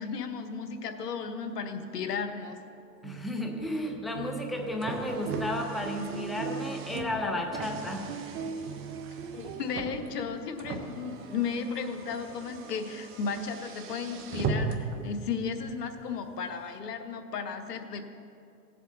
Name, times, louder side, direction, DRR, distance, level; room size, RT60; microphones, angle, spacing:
voice 1, 0.0-2.6 9.3-18.1, left 5 dB, 80° left, 8 dB, 1.2 m, -34 dB
sound 1, 2.9-10.5, right 6 dB, 55° right, 0.8 m, -40 dB
voice 2, 3.0-8.0, left 1 dB, ahead, 2 dB, 0.6 m, -33 dB
Car, 4.4-15.0, right 4 dB, 25° right, 1.0 m, -39 dB
17.5 x 7.5 x 4.0 m, 2.5 s
hypercardioid pair, 120°, 47 cm